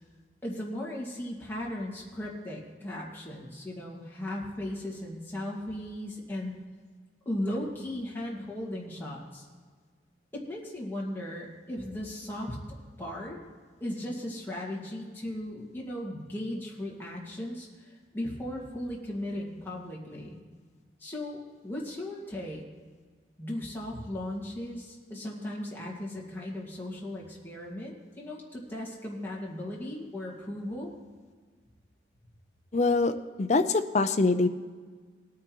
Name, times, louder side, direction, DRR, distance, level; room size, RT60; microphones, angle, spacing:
voice 1, 0.4-6.5 7.3-9.5 10.3-12.6 13.0-13.4 13.8-20.4 21.0-22.6 23.4-30.9, left 1 dB, 10° left, -4 dB, 1.9 m, -37 dB
voice 2, 32.7-34.5, left 3 dB, 40° left, 10 dB, 0.5 m, -24 dB
18.5 x 9.5 x 3.0 m, 1.5 s
head